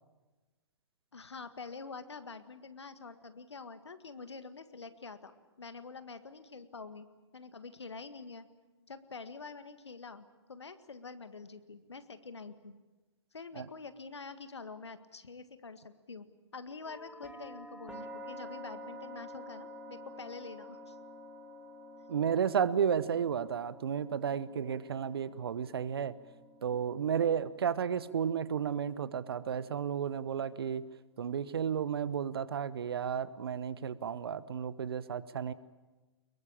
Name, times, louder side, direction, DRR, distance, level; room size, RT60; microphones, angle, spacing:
voice 1, 1.1-7.1 7.3-8.5 8.9-12.7 13.3-16.3 16.5-21.0, left 4 dB, 70° left, 11 dB, 1.8 m, -46 dB
sound 1, 16.9-30.7, equal, 5° right, 2.7 m, -50 dB
voice 2, 22.1-26.2 26.6-30.9 31.2-35.5, right 8 dB, 60° right, 17 dB, 1.1 m, -32 dB
24.5 x 22.0 x 8.9 m, 1.2 s
figure-of-eight pair, 115°, 15 cm